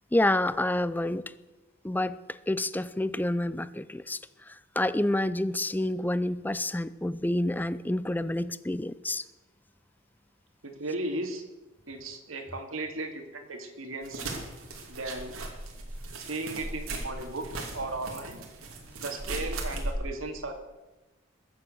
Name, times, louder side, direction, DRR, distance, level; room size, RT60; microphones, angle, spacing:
voice 1, 0.1-1.2 1.8-4.2 4.5-9.2, left 1 dB, 10° left, 16 dB, 0.5 m, -28 dB
voice 2, 10.6-11.4 11.9-14.3 14.9-15.4 16.2-18.4 19.0-20.5, right 2 dB, 70° right, 5 dB, 2.4 m, -36 dB
sound 1, 14.0-19.9, right 2 dB, 90° right, 2.8 m, -37 dB
21.5 x 7.5 x 7.9 m, 1.1 s
head